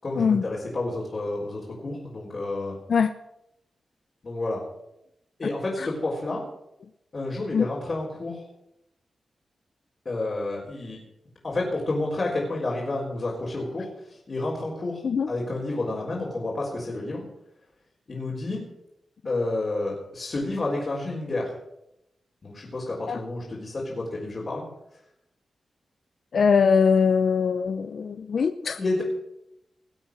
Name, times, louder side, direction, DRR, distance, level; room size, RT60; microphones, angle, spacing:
voice 1, 0.0-2.8 4.2-4.6 5.4-6.4 7.1-8.4 10.0-11.0 11.4-17.2 18.1-18.6 19.2-21.5 22.4-24.6 28.8-29.0, left 2 dB, 40° left, -5 dB, 4.3 m, -30 dB
voice 2, 26.3-28.8, left 6 dB, 65° left, 10 dB, 0.6 m, -22 dB
19.5 x 8.2 x 6.3 m, 0.84 s
wide cardioid pair, 115°, 0 cm